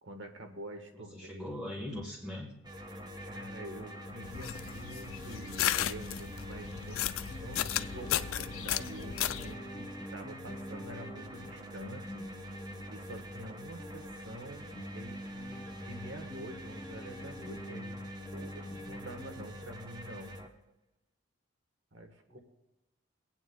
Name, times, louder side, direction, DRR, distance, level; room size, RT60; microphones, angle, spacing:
voice 1, 0.0-1.4 3.2-12.3 12.9-20.3 21.9-22.4, right 1 dB, 65° right, 5 dB, 1.3 m, -47 dB
voice 2, 0.9-2.5 22.3-22.4, left 1 dB, ahead, -6 dB, 1.2 m, -41 dB
sound 1, 2.6-20.5, equal, 20° right, 0.7 m, -46 dB
sound 2, 2.9-19.5, equal, 20° left, 0.5 m, -47 dB
sound 3, 4.2-9.5, left 12 dB, 85° left, 0.4 m, -35 dB
23.5 x 8.9 x 2.2 m, 0.92 s
head